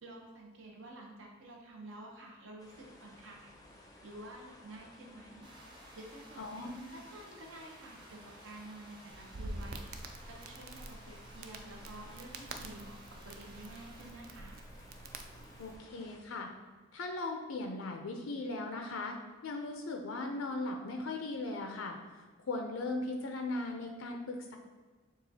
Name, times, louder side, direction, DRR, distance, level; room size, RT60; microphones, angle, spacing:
voice 1, 0.0-3.5 4.0-5.5 6.0-9.9 10.3-12.9 13.2-14.6, right 1 dB, 70° right, 0 dB, 0.8 m, -50 dB
sound 1, 2.6-16.2, left 1 dB, 20° left, 0.5 m, -57 dB
sound 2, 5.4-14.1, right 1 dB, 25° right, 0.7 m, -57 dB
voice 2, 6.4-6.7 15.6-16.5 16.9-19.2 19.4-22.0 22.5-24.6, left 2 dB, 80° left, 3 dB, 0.5 m, -38 dB
Crackle, 9.1-15.8, right 2 dB, 45° right, 0.3 m, -47 dB
6.8 x 2.4 x 2.7 m, 1.4 s
head